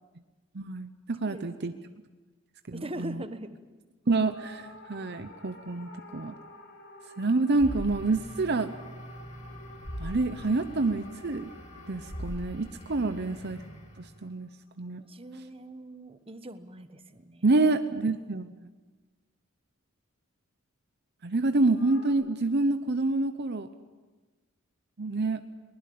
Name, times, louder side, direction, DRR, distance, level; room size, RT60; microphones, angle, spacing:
voice 1, 0.5-1.7 2.7-3.2 4.1-6.3 7.2-8.7 10.0-11.5 11.9-13.6 14.0-14.5 14.8-15.0 17.4-18.5 21.2-23.7 25.0-25.4, right 3 dB, 50° right, 9 dB, 0.8 m, -27 dB
voice 2, 1.3-2.0 2.7-3.6 13.0-13.4 14.9-17.4, right 1 dB, 25° right, 10 dB, 1.2 m, -42 dB
sound 1, 4.3-14.8 21.7-22.1, left 2 dB, 60° left, 5.1 m, -51 dB
sound 2, 7.5-14.2, equal, 30° left, 6.2 m, -42 dB
23.0 x 20.5 x 8.6 m, 1.3 s
head